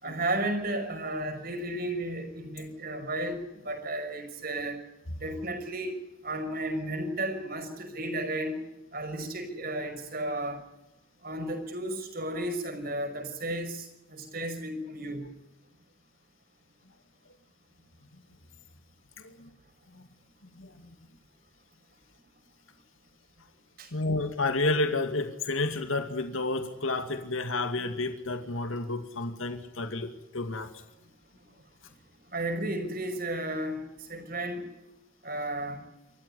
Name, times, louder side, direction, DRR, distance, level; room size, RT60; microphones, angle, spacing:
voice 1, 0.0-4.8 5.2-6.0 6.2-8.6 8.9-10.6 11.2-15.3 23.8-23.9 32.3-33.8 34.1-34.6 35.2-35.8, right 1 dB, 45° right, 6 dB, 5.8 m, -33 dB
voice 2, 20.6-20.9 23.9-30.7, left 2 dB, 75° left, 7 dB, 2.4 m, -30 dB
27.5 x 15.0 x 10.0 m, 0.93 s
head